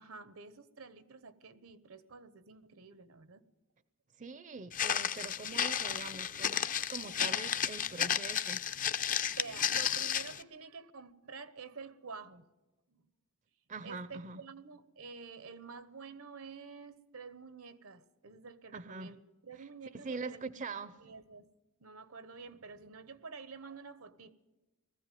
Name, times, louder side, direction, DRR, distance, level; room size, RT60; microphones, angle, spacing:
voice 1, 0.0-3.5 9.3-12.4 12.9-13.0 13.8-20.4 21.0-21.5 21.8-24.4, right 4 dB, 80° right, 1.1 m, -49 dB
voice 2, 4.2-8.6 13.7-14.4 18.7-19.2 19.6-19.7 19.9-21.0, right 4 dB, 35° right, 0.6 m, -43 dB
Walk footsteps, 4.7-10.4, left 8 dB, 40° left, 0.6 m, -33 dB
19.5 x 15.0 x 9.3 m
head